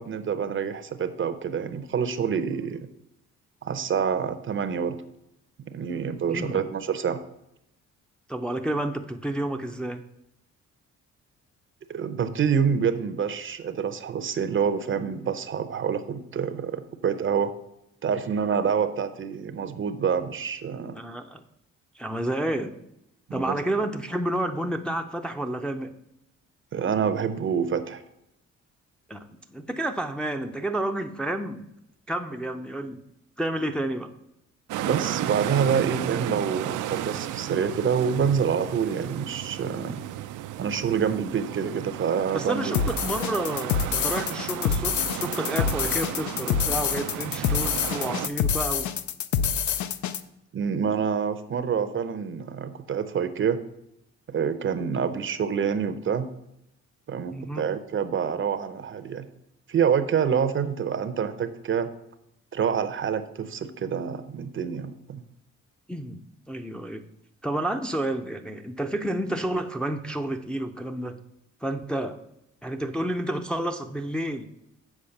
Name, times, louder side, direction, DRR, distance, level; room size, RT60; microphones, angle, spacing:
voice 1, 0.0-2.8 3.6-5.0 5.7-7.2 11.9-17.5 18.0-21.0 23.3-23.6 26.7-28.0 34.8-40.0 40.6-42.8 50.5-53.6 54.3-56.3 57.1-59.3 59.7-61.9 62.5-65.2, right 7 dB, 40° right, 12 dB, 0.7 m, -27 dB
voice 2, 6.3-6.6 8.3-10.0 20.9-21.4 21.9-22.7 23.3-25.9 29.1-31.6 32.1-33.0 33.4-34.1 42.3-48.9 57.3-57.7 65.9-66.2 66.5-67.0 67.4-71.2 71.6-72.2 72.6-74.4, right 1 dB, 5° left, 4 dB, 0.5 m, -30 dB
sound 1, 34.7-48.3, right 12 dB, 85° right, 0.5 m, -33 dB
sound 2, 42.7-50.2, left 7 dB, 70° left, 0.6 m, -26 dB
7.2 x 4.8 x 6.5 m, 0.80 s
cardioid pair, 90°, 30 cm